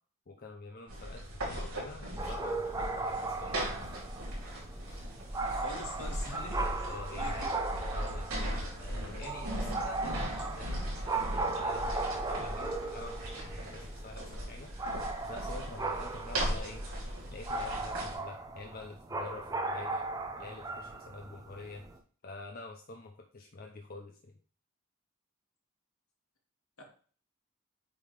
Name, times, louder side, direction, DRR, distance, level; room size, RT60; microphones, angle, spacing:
voice 1, 0.3-4.0 4.9-5.1 6.8-7.5 7.9-14.7 15.3-16.8 17.3-20.0 20.4-21.8 22.2-24.3, left 3 dB, 45° left, 2 dB, 0.7 m, -47 dB
sound 1, 0.9-18.2, equal, 85° right, 4.4 m, -38 dB
sound 2, 2.2-22.0, right 3 dB, 15° right, 0.8 m, -37 dB
voice 2, 5.4-6.9 7.2-7.5 26.8-26.9, left 2 dB, 70° left, 1 dB, 2.2 m, -44 dB
8.7 x 3.8 x 4.9 m, 0.43 s
head